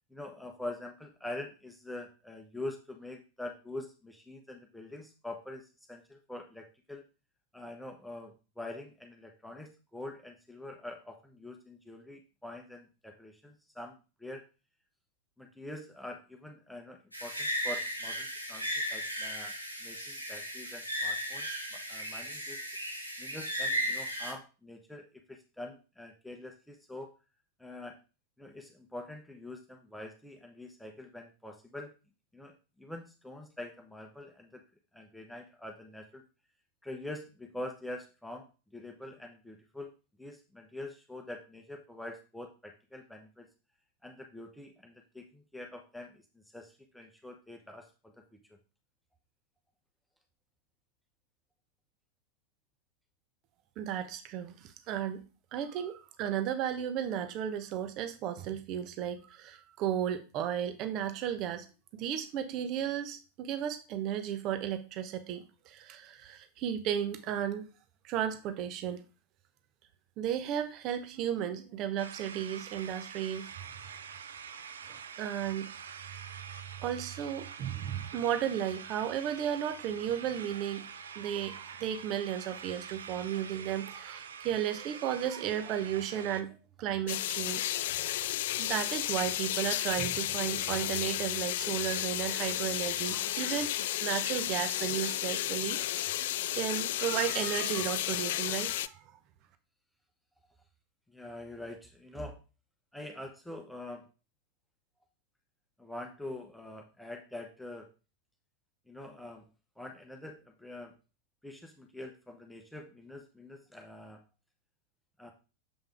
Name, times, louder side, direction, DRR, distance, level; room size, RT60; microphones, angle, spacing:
voice 1, 0.1-7.0 7.5-14.4 15.4-19.5 19.8-22.7 23.2-27.1 27.6-28.0 28.4-31.9 32.3-34.6 34.9-36.2 36.8-38.5 38.7-39.9 40.2-43.5 44.0-46.2 46.5-48.2 101.1-102.4 102.9-104.1 105.8-107.9 108.9-109.4 109.8-110.9 111.4-114.2 115.2-115.3, left 1 dB, ahead, 2 dB, 1.1 m, -45 dB
sound 1, 17.1-24.3, equal, 90° right, 1.7 m, -35 dB
voice 2, 53.8-55.2 55.5-61.7 61.9-67.7 68.0-69.0 70.2-73.5 74.9-75.7 76.8-80.8 81.1-87.7 88.6-93.7 94.0-96.3 96.5-99.1, right 10 dB, 40° right, 9 dB, 1.0 m, -34 dB
sound 2, 72.0-86.4, right 7 dB, 65° right, 0.6 m, -46 dB
sound 3, 87.1-98.9, left 14 dB, 55° left, 0.3 m, -33 dB
7.3 x 5.5 x 3.5 m, 0.32 s
figure-of-eight pair, 90°, 0 cm